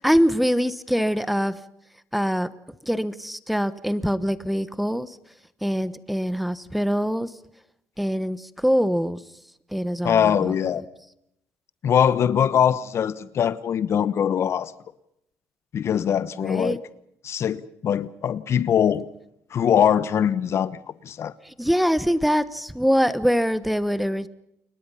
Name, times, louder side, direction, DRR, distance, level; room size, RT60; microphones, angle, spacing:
voice 1, 0.0-1.5 2.1-2.5 2.8-5.2 5.6-7.3 8.0-9.2 9.7-10.8 16.4-16.8 21.4-24.3, equal, ahead, 1.2 m, -24 dB
voice 2, 10.0-10.8 11.8-14.7 15.7-16.8 17.2-19.1 19.5-21.3, left 8 dB, 50° left, 1.0 m, -22 dB
29.5 x 21.5 x 5.7 m
cardioid pair, 110°, 6 cm